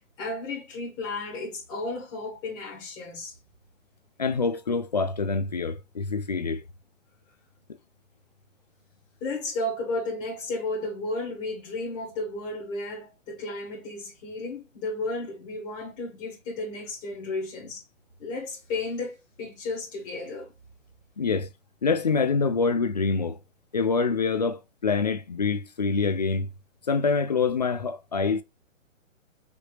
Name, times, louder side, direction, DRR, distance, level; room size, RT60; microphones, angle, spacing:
voice 1, 0.2-3.3 9.2-17.8 18.2-20.5, left 2 dB, 15° left, 1.3 m, -33 dB
voice 2, 4.2-6.6 21.2-21.5 21.8-23.4 23.7-26.5 26.9-28.4, left 4 dB, 35° left, 0.4 m, -25 dB
5.0 x 2.8 x 3.2 m
hypercardioid pair, 145°, 40 cm